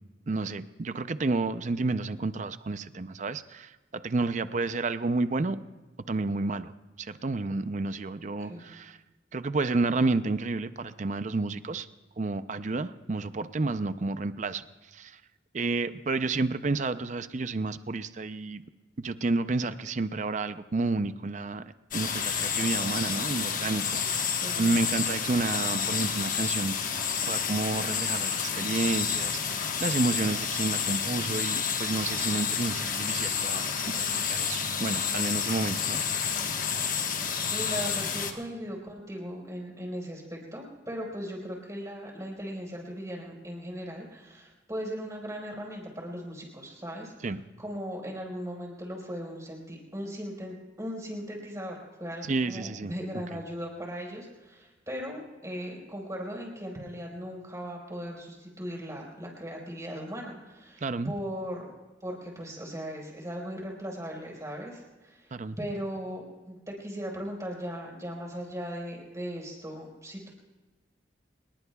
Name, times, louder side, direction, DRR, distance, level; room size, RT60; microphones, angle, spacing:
voice 1, 0.3-5.6 6.1-9.0 9.3-11.9 12.2-14.6 14.9-15.2 15.5-18.6 19.0-21.6 21.9-27.0 27.3-36.0 47.2-47.4 52.2-52.9 53.3-53.4 60.8-61.1 65.3-65.6, right 3 dB, 40° right, 12 dB, 0.5 m, -30 dB
sound 1, 21.9-38.3, left 7 dB, 45° left, 1.4 m, -30 dB
voice 2, 24.4-24.7 37.5-61.7 62.0-70.3, equal, 15° right, -1 dB, 4.6 m, -38 dB
27.0 x 20.5 x 2.3 m, 1.2 s
head